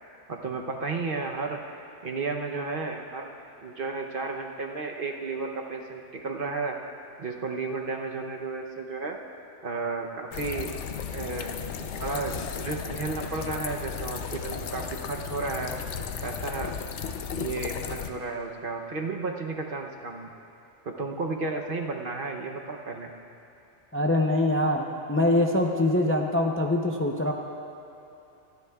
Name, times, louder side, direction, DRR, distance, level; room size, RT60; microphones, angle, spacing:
voice 1, 0.3-1.6 2.0-3.3 3.6-6.8 7.2-9.2 9.6-10.7 11.1-15.7 16.2-16.7 17.3-20.3 20.8-23.1, right 3 dB, 50° right, 2 dB, 1.0 m, -33 dB
sound 1, 10.3-18.1, left 7 dB, 75° left, 1.0 m, -35 dB
voice 2, 23.9-27.3, left 1 dB, 15° left, 1 dB, 0.5 m, -24 dB
28.0 x 10.5 x 2.4 m, 2.9 s
omnidirectional pair, 1.2 m